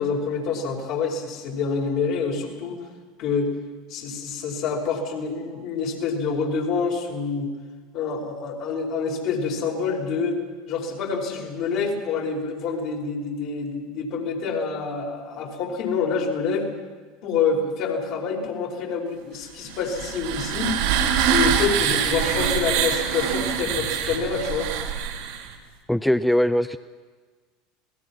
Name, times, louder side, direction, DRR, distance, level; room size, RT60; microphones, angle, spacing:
voice 1, 0.0-2.8 3.2-3.5 3.9-7.5 7.9-10.4 10.7-16.7 17.2-20.7 21.3-24.7, left 5 dB, 55° left, 1 dB, 5.0 m, -27 dB
sound 1, 19.7-25.5, right 8 dB, 65° right, 3.4 m, -24 dB
voice 2, 25.9-26.8, equal, 5° left, 11 dB, 0.7 m, -20 dB
27.0 x 19.0 x 6.1 m, 1.4 s
hypercardioid pair, 75°, 0 cm